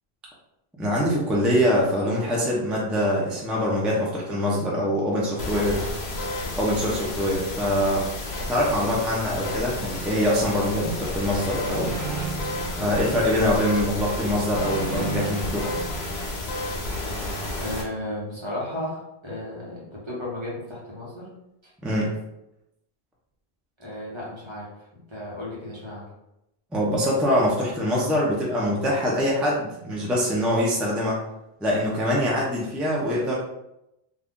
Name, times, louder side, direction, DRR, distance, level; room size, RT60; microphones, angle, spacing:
voice 1, 0.8-5.8 6.6-8.1 8.5-11.9 12.8-15.7 21.8-22.1 26.7-31.2 31.6-33.3, equal, ahead, -5 dB, 0.5 m, -24 dB
sound 1, 5.4-17.8, left 1 dB, 90° left, 1.0 m, -31 dB
sound 2, 11.5-13.7 14.4-16.6, right 6 dB, 60° right, 0.8 m, -35 dB
voice 2, 17.6-21.3 23.8-24.7 24.9-26.0, left 1 dB, 30° right, -6 dB, 1.0 m, -34 dB
2.6 x 2.3 x 3.6 m, 0.87 s
omnidirectional pair, 1.0 m